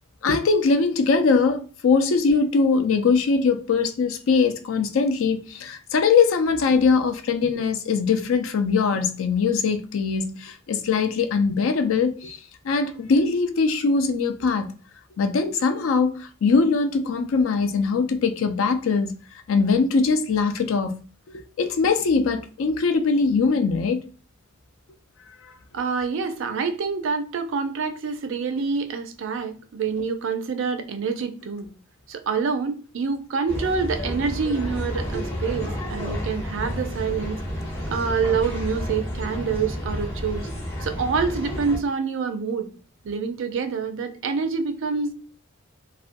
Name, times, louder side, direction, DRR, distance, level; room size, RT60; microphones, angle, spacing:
voice 1, 0.2-12.4 12.6-14.7 15.2-19.1 19.5-21.0 21.3-24.0, left 4 dB, 70° left, 0.4 m, -21 dB
voice 2, 25.7-31.7 32.1-37.4 37.9-40.5 40.8-42.7 43.0-45.1, right 5 dB, 65° right, 0.4 m, -26 dB
sound 1, 33.5-41.8, equal, 30° left, 0.9 m, -30 dB
2.4 x 2.2 x 2.5 m
head